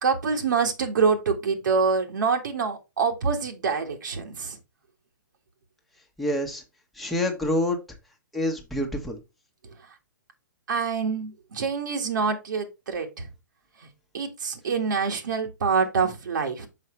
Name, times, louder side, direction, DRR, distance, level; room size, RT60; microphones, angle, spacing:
voice 1, 0.0-4.6 10.7-13.3 14.1-16.7, right 5 dB, 70° right, 1.7 m, -26 dB
voice 2, 6.2-6.6 6.9-7.8 8.3-9.2, left 1 dB, ahead, 1.2 m, -27 dB
5.8 x 5.4 x 3.1 m
hypercardioid pair, 140°, 11 cm